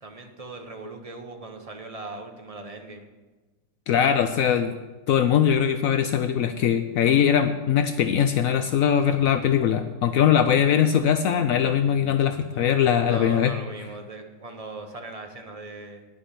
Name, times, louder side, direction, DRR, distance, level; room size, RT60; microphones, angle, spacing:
voice 1, 0.0-3.1 13.0-16.0, right 2 dB, 35° right, 4 dB, 0.6 m, -39 dB
voice 2, 3.9-4.7 5.1-13.5, left 8 dB, 85° left, 9 dB, 0.7 m, -21 dB
11.0 x 5.7 x 8.2 m, 1.2 s
omnidirectional pair, 2.0 m